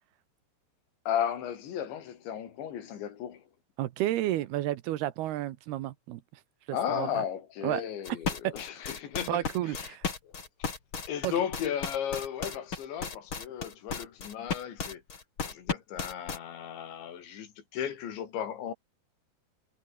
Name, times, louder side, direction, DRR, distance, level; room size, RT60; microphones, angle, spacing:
voice 1, 1.1-3.4 6.7-10.0 10.2-10.3 11.1-15.0 15.4-18.7, left 9 dB, 85° left, 5.3 m, -35 dB
voice 2, 3.8-6.2 6.7-7.1 7.6-7.8 8.4-8.5 9.3-10.1 11.2-11.3, right 14 dB, 75° right, 2.8 m, -31 dB
sound 1, 8.0-16.4, left 5 dB, 30° left, 3.1 m, -34 dB
omnidirectional pair, 5.1 m